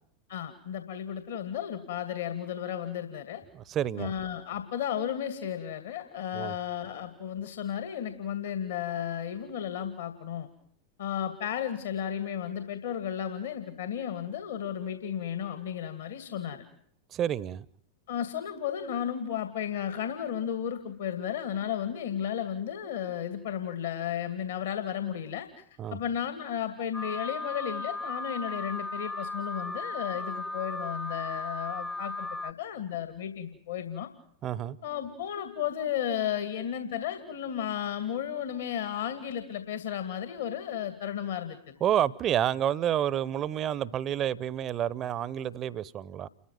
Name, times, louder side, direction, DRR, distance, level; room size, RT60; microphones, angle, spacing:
voice 1, 0.3-3.4 4.0-10.5 11.0-16.6 18.1-25.6 25.9-34.1 34.8-41.7, left 9 dB, 60° left, 9 dB, 2.4 m, -34 dB
voice 2, 3.5-4.1 6.3-6.5 17.1-17.6 25.8-26.0 34.4-34.8 41.8-46.3, right 10 dB, 30° right, 21 dB, 0.9 m, -29 dB
Alarm, 26.9-32.5, left 2 dB, 10° left, 1.0 m, -36 dB
29.5 x 14.0 x 9.3 m, 0.66 s
figure-of-eight pair, 90°, 0 cm